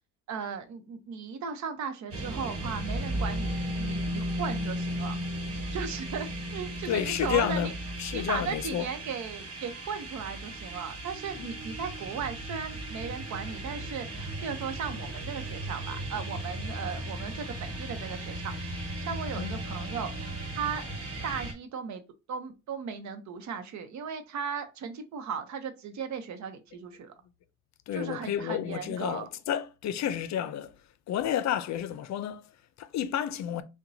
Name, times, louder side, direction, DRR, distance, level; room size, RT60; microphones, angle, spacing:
voice 1, 0.3-5.2 5.7-7.7 8.1-18.5 18.8-20.8 21.2-22.0 22.3-27.1 27.9-29.3, right 6 dB, 70° right, 0.8 m, -37 dB
sound 1, 2.1-21.5, right 1 dB, 50° right, 1.2 m, -36 dB
voice 2, 6.9-8.9 11.4-11.5 19.4-19.6 27.9-30.7 31.1-33.6, left 10 dB, 65° left, 0.5 m, -31 dB
5.5 x 2.2 x 2.7 m
cardioid pair, 90°, 30 cm